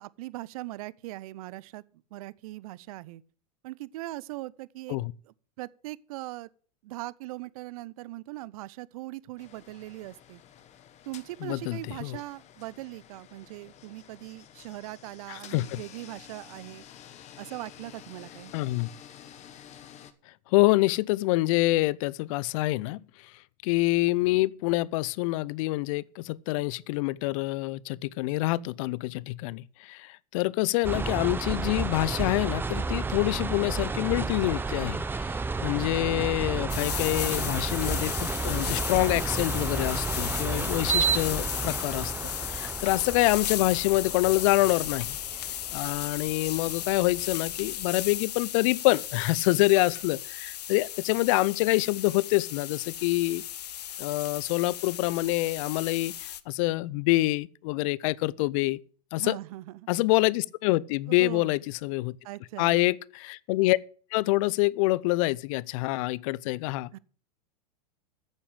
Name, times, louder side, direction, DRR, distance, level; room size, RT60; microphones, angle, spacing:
voice 1, 0.0-1.8 2.1-3.2 3.6-5.0 5.3-6.5 6.8-10.4 11.1-16.8 17.4-18.5 59.2-59.9 61.1-61.5 62.2-62.8 66.9-67.0, right 18 dB, 60° right, 0.7 m, -40 dB
sound 1, 9.4-20.1, left 10 dB, 35° left, 1.3 m, -51 dB
voice 2, 11.4-12.2 15.3-15.8 18.5-18.9 20.5-23.0 23.6-42.1 42.4-45.2 45.7-53.4 54.0-58.8 59.1-59.4 59.9-62.2 62.6-63.8 64.1-66.9, left 20 dB, 55° left, 0.5 m, -26 dB
sound 2, 30.8-48.0, right 4 dB, 10° right, 0.8 m, -32 dB
sound 3, 36.7-56.4, left 12 dB, 75° left, 0.8 m, -35 dB
9.7 x 7.1 x 8.2 m
hypercardioid pair, 105°, 21 cm